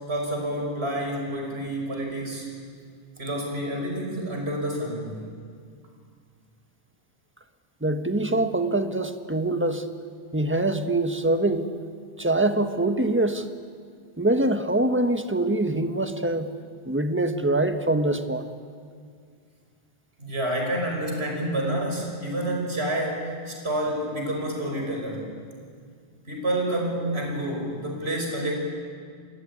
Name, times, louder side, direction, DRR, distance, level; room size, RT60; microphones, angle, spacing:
voice 1, 0.1-2.5 3.2-5.3 20.2-25.3 26.3-28.5, right 1 dB, 65° right, 1 dB, 6.0 m, -28 dB
voice 2, 7.8-9.9 10.3-11.7 12.2-13.4 14.2-16.5 16.9-18.5, right 2 dB, 10° right, 8 dB, 1.3 m, -24 dB
28.5 x 21.0 x 9.7 m, 2.1 s
omnidirectional pair, 1.1 m